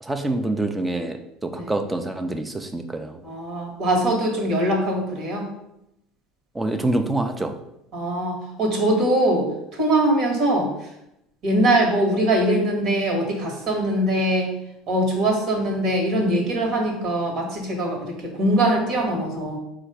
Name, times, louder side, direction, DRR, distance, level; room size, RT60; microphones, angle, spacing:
voice 1, 0.0-3.2 6.5-7.5, right 2 dB, 15° right, 7 dB, 0.5 m, -26 dB
voice 2, 3.2-5.5 7.9-10.9 11.4-14.5 14.9-19.6, right 1 dB, 55° right, 1 dB, 1.4 m, -22 dB
4.0 x 2.4 x 4.7 m, 0.82 s
supercardioid pair, 90°, 0 cm